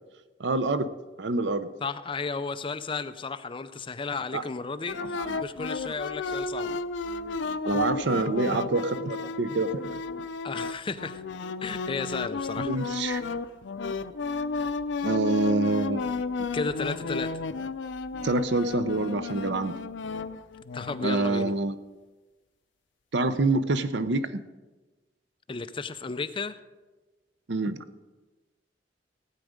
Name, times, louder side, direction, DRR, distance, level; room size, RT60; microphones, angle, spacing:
voice 1, 0.4-0.9 1.2-1.7 4.3-4.4 5.0-5.4 7.6-10.0 12.6-13.2 15.0-16.1 18.2-19.8 21.0-21.7 23.1-24.4 27.5-27.8, right 2 dB, 70° right, 12 dB, 0.7 m, -26 dB
voice 2, 1.8-6.7 10.4-11.2 11.6-12.7 16.5-17.3 20.7-21.5 25.5-26.6, left 4 dB, 30° left, 11 dB, 0.5 m, -33 dB
sound 1, 4.9-21.2, left 4 dB, 85° left, 0.5 m, -33 dB
16.0 x 9.2 x 5.1 m, 1.2 s
head